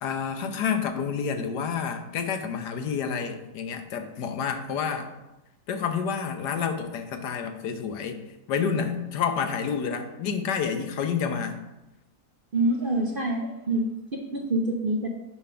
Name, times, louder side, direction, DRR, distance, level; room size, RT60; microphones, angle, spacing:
voice 1, 0.0-5.1 5.7-8.2 8.5-11.6, left 6 dB, 85° left, 7 dB, 1.4 m, -29 dB
voice 2, 12.5-15.1, right 1 dB, 45° right, 1 dB, 0.7 m, -26 dB
9.1 x 3.5 x 5.7 m, 0.96 s
omnidirectional pair, 1.8 m